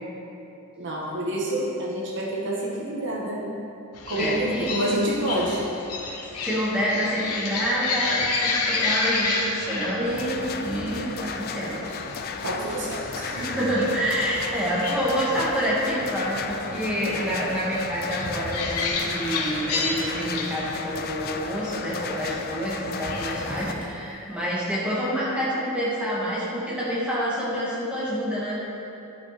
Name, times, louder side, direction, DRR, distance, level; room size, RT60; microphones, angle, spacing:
voice 1, 0.8-3.4 4.1-5.7 12.4-13.4, right 1 dB, 55° right, -4 dB, 1.7 m, -28 dB
sound 1, 3.9-23.7, left 3 dB, 90° left, 1.0 m, -32 dB
voice 2, 4.2-4.7 6.4-11.8 12.0-12.1 13.1-28.6, equal, 5° right, -8 dB, 2.0 m, -27 dB
sound 2, 10.0-23.7, left 5 dB, 45° left, 0.4 m, -35 dB
sound 3, 18.3-19.4 20.0-20.1 20.3-20.8 21.0-21.7 22.6-22.7 22.8-24.9, equal, 20° right, 1.0 m, -44 dB
11.0 x 5.9 x 4.3 m, 2.9 s
head